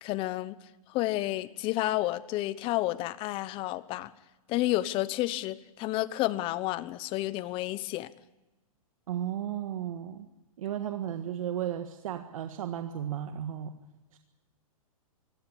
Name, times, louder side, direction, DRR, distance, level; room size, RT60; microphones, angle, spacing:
voice 1, 0.0-0.6 0.9-4.1 4.5-8.1, left 16 dB, 30° left, 17 dB, 0.9 m, -30 dB
voice 2, 9.1-10.3 10.6-13.7 14.1-14.2, right 10 dB, 65° right, 6 dB, 1.6 m, -34 dB
24.0 x 16.5 x 8.5 m, 1.1 s
hypercardioid pair, 145°, 19 cm